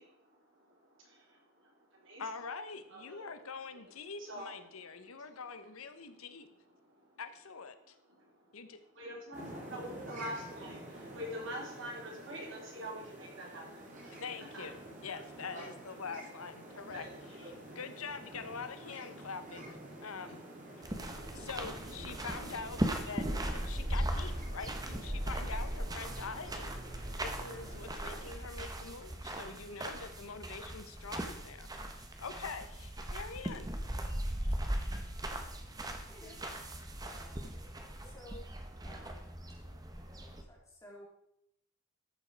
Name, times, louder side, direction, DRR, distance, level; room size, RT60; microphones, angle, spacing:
voice 1, 0.0-2.2 2.9-5.6 5.9-7.2 7.8-16.0 16.6-17.8 19.1-19.3 19.9-21.3, equal, 60° right, -1 dB, 3.3 m, -48 dB
voice 2, 2.2-6.5 7.2-7.9 8.5-8.8 14.1-14.8 15.0-17.0 17.8-19.8 20.0-20.4 21.3-23.2 23.5-26.7 27.2-33.7, left 5 dB, 85° left, 10 dB, 1.0 m, -44 dB
sound 1, 9.3-28.3, right 1 dB, 35° right, 2.4 m, -49 dB
sound 2, 20.8-40.4, right 1 dB, 15° right, 1.0 m, -38 dB
voice 3, 36.1-36.4 36.7-37.5 38.0-38.4 38.8-39.2 40.0-41.0, equal, 15° left, -2 dB, 2.8 m, -55 dB
13.5 x 7.2 x 4.6 m, 0.78 s
head